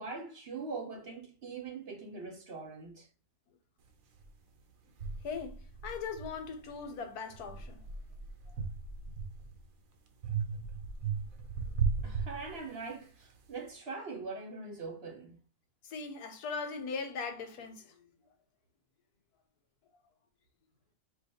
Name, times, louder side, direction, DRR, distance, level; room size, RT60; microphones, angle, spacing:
voice 1, 0.0-3.1 12.0-15.4, right 4 dB, 50° right, 0.9 m, -42 dB
sound 1, 4.2-4.3 5.0-6.8 7.3-9.6 10.2-13.0, right 5 dB, 65° right, 1.2 m, -36 dB
voice 2, 5.2-7.8 8.5-8.6 15.8-17.9, left 5 dB, 85° left, 1.5 m, -40 dB
5.0 x 2.3 x 4.1 m
omnidirectional pair, 1.6 m